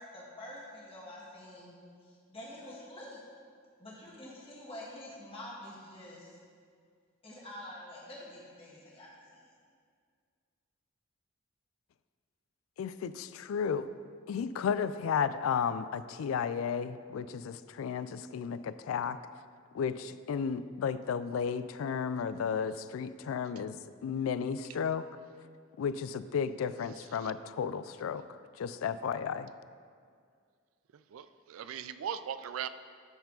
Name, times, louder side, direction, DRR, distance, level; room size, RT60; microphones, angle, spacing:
voice 1, 0.0-1.8 2.0-3.2 3.8-6.4 7.2-9.5, left 1 dB, 30° left, -5 dB, 1.8 m, -47 dB
voice 2, 12.8-13.9 14.3-19.2 19.7-25.1 25.8-29.5, left 6 dB, 80° left, 14 dB, 0.3 m, -33 dB
voice 3, 30.9-32.7, right 8 dB, 90° right, 12 dB, 0.3 m, -39 dB
13.0 x 4.8 x 3.8 m, 2.1 s
head